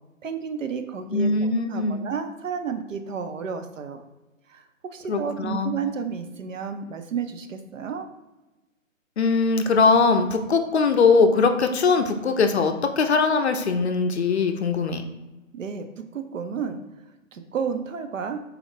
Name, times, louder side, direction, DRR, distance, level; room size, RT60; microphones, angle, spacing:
voice 1, 0.2-4.0 4.5-8.1 15.5-16.8 17.3-18.4, right 6 dB, 70° right, 7 dB, 0.6 m, -32 dB
voice 2, 1.1-2.1 5.1-5.8 9.2-15.0, left 4 dB, 55° left, 6 dB, 0.5 m, -21 dB
4.1 x 2.1 x 3.9 m, 1.1 s
figure-of-eight pair, 145°, 40 cm